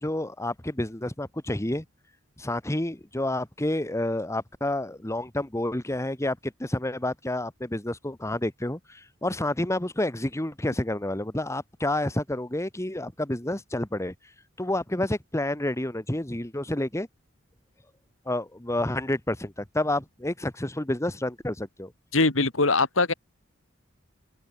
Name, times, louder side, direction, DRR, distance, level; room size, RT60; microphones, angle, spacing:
voice 1, 0.0-1.8 2.4-14.1 14.6-17.1 18.3-21.9, left 1 dB, 15° left, 1.4 m, -29 dB
voice 2, 22.1-23.1, left 3 dB, 90° left, 2.6 m, -22 dB
open air
head